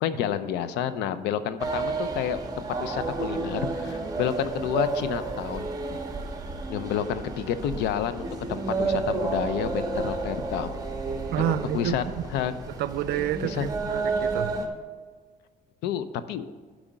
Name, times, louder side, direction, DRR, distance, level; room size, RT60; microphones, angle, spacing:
voice 1, 0.0-5.7 6.7-10.8 11.4-12.0 12.3-12.5 13.4-13.7 15.8-16.5, left 9 dB, 85° left, 13 dB, 0.6 m, -29 dB
sound 1, 1.6-14.7, right 3 dB, 20° right, 1.4 m, -31 dB
voice 2, 11.3-12.0 12.8-14.5, right 12 dB, 75° right, 14 dB, 0.5 m, -29 dB
8.9 x 5.0 x 7.5 m, 1.5 s
cardioid pair, 110°, 17 cm